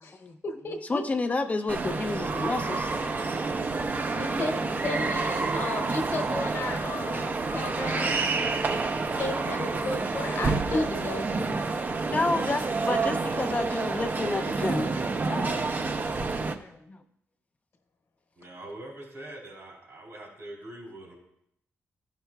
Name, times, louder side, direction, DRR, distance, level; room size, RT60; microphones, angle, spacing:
voice 1, 0.0-1.0 4.2-8.2 9.2-11.6 15.3-15.6, left 3 dB, 60° left, 4 dB, 1.2 m, -35 dB
voice 2, 0.9-2.9 4.4-4.5 10.7-10.8 11.9-14.9 16.2-17.0, left 2 dB, 30° left, 7 dB, 0.5 m, -30 dB
sound 1, 1.7-16.5, right 3 dB, 35° right, 0.6 m, -29 dB
voice 3, 18.4-21.1, right 1 dB, 70° right, -2 dB, 3.3 m, -43 dB
12.5 x 5.8 x 2.3 m, 0.75 s
cardioid pair, 95°, 5 cm